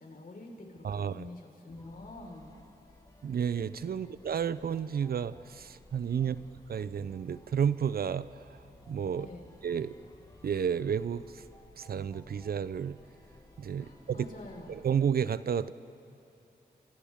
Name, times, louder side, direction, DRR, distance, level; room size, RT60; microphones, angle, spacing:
voice 1, 0.0-2.5 3.9-4.2 6.2-6.4 9.2-9.5 13.8-14.8, left 2 dB, 60° left, 0 dB, 4.7 m, -47 dB
voice 2, 0.8-1.3 3.2-6.4 6.7-8.4 8.9-9.3 9.6-9.9 10.4-11.4 11.8-13.0 13.6-14.3 14.7-15.7, right 7 dB, 65° right, 16 dB, 0.6 m, -31 dB
sound 1, 1.7-15.1, left 1 dB, 20° left, 3.2 m, -56 dB
29.5 x 26.5 x 3.7 m, 2.8 s
cardioid pair, 40°, 17 cm